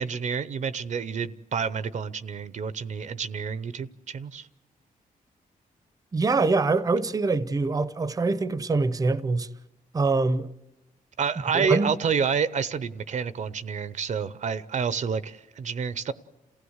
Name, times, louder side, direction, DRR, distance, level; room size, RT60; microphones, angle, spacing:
voice 1, 0.0-4.5 11.2-16.1, right 6 dB, 55° right, 0.7 m, -29 dB
voice 2, 6.1-9.5 9.9-10.5 11.5-11.9, right 3 dB, 25° right, 0.7 m, -24 dB
28.5 x 16.0 x 8.0 m
wide cardioid pair, 130°, 15 cm